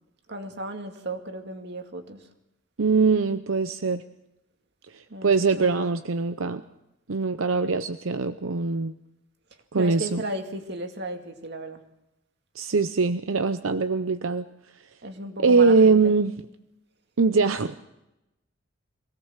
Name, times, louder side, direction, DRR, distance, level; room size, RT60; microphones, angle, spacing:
voice 1, 0.3-2.2 5.1-5.9 9.8-11.8 15.0-16.1, right 1 dB, 55° right, 5 dB, 2.2 m, -35 dB
voice 2, 2.8-4.0 4.9-6.6 7.1-8.9 9.7-10.2 12.6-14.5 15.4-16.4 17.2-17.8, right 4 dB, 85° right, 10 dB, 0.7 m, -22 dB
23.5 x 17.5 x 7.4 m, 0.92 s
head